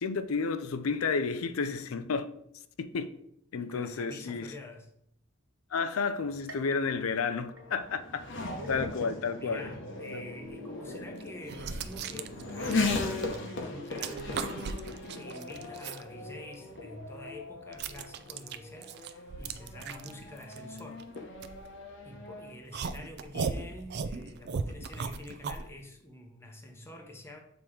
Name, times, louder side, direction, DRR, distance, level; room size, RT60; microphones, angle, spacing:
voice 1, 0.0-2.3 2.8-3.1 3.5-4.5 5.7-8.0 8.7-9.7 10.1-10.2 23.3-23.5, left 5 dB, 90° left, 0.5 m, -31 dB
voice 2, 3.6-4.9 9.3-14.8 15.1-21.1 22.0-27.4, left 1 dB, 10° left, 0.8 m, -47 dB
Race car auto racing / Accelerating revving vroom, 6.3-22.6, left 3 dB, 60° left, 0.9 m, -38 dB
sound 1, 6.5-8.2 8.6-9.2 9.7-9.8 10.8-10.9, right 2 dB, 75° right, 1.5 m, -53 dB
sound 2, 10.4-10.5 11.2-13.5 13.8-16.0 16.5-22.1 22.7-25.7, right 5 dB, 50° right, 0.4 m, -37 dB
7.1 x 3.0 x 4.9 m
head